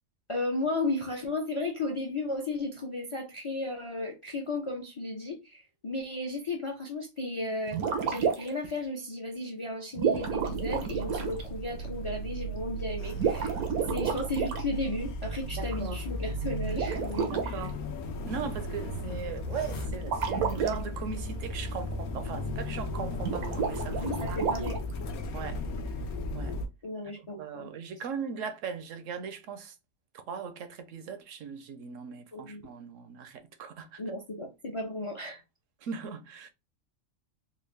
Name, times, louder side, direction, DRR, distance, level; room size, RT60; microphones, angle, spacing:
voice 1, 0.3-7.8 8.1-13.5 13.9-17.7 24.0-24.8 26.8-27.7 32.3-32.7 34.0-35.4, left 2 dB, 35° left, 0.5 m, -34 dB
sound 1, 7.7-8.7 9.9-11.4 13.1-14.6 16.7-17.5 20.0-20.7 23.2-24.9, right 6 dB, 90° right, 1.2 m, -30 dB
sound 2, 10.2-26.7, equal, 85° left, 1.2 m, -36 dB
voice 2, 15.6-16.1 17.3-17.8 18.3-24.7 25.3-25.6 26.3-26.6 27.2-29.8 30.1-34.0 35.8-36.5, right 6 dB, 70° right, 0.9 m, -39 dB
3.9 x 2.3 x 3.2 m
omnidirectional pair, 1.5 m